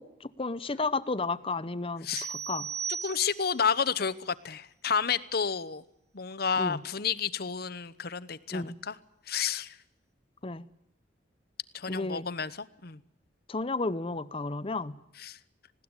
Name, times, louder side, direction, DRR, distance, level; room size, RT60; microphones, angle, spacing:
voice 1, 0.0-2.7 6.6-6.8 8.5-8.7 10.4-10.6 11.9-12.3 13.5-14.9, left 3 dB, 30° left, 15 dB, 0.8 m, -32 dB
sound 1, 2.1-3.7, right 7 dB, 40° right, 2.6 m, -36 dB
voice 2, 3.0-5.8 6.1-9.0 9.3-9.8 11.7-13.0 15.2-15.4, left 6 dB, 55° left, 15 dB, 1.0 m, -31 dB
19.5 x 17.5 x 9.8 m, 0.81 s
head